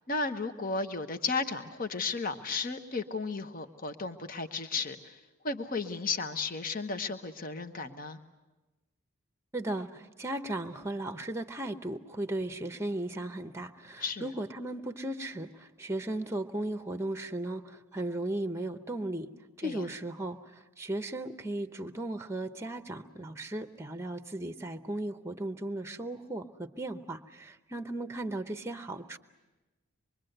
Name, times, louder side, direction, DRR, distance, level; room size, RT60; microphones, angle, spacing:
voice 1, 0.1-5.2 5.4-8.2 14.0-14.3 19.6-19.8, left 4 dB, 40° left, 8 dB, 1.1 m, -34 dB
voice 2, 9.5-19.3 19.6-29.2, right 1 dB, 10° right, 8 dB, 0.8 m, -36 dB
25.0 x 23.0 x 7.9 m, 1.1 s
head